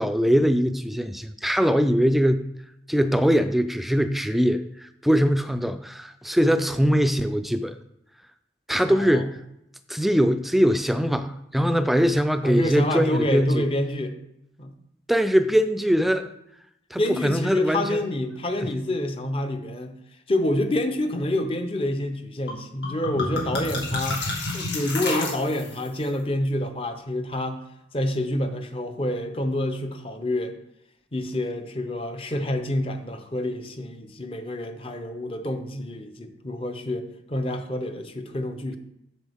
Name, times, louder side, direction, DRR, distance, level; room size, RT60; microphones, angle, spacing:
voice 1, 0.0-2.4 2.9-7.8 8.7-9.4 9.9-13.6 15.1-16.3 16.9-18.0 18.6-18.7, equal, ahead, 10 dB, 0.3 m, -22 dB
voice 2, 8.9-9.2 12.4-14.1 14.6-14.7 17.0-19.9 20.3-24.2 24.5-27.6 27.9-30.5 31.1-38.8, left 1 dB, 30° left, 7 dB, 0.7 m, -27 dB
sound 1, 22.5-22.6 22.8-25.9, left 2 dB, 90° left, 2.0 m, -30 dB
7.9 x 7.0 x 3.6 m, 0.81 s
head